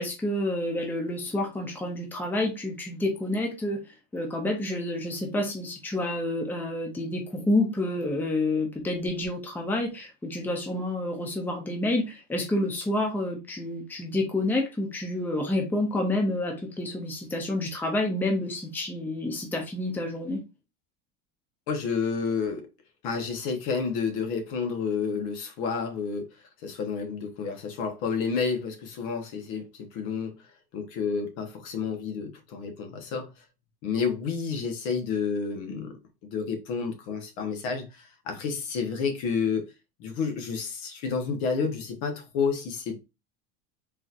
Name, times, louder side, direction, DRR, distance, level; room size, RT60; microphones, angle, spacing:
voice 1, 0.0-3.8 4.1-20.4, left 1 dB, 5° left, 0.6 m, -29 dB
voice 2, 21.7-22.7 23.0-26.3 26.6-30.4 30.7-33.3 33.8-39.7 40.0-43.0, left 5 dB, 65° left, 1.1 m, -30 dB
3.9 x 2.8 x 2.5 m
cardioid pair, 150°, 30 cm